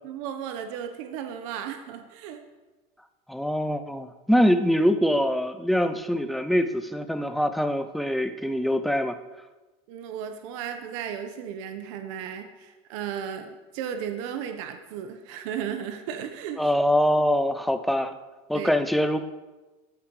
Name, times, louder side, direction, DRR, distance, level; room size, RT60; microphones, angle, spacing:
voice 1, 0.0-2.4 9.9-16.7 18.5-18.7, right 8 dB, 65° right, 7 dB, 1.1 m, -35 dB
voice 2, 3.3-9.2 16.6-18.2 18.5-19.2, equal, ahead, 9 dB, 0.4 m, -24 dB
14.0 x 7.0 x 4.8 m, 1.2 s
cardioid pair, 180°, 17 cm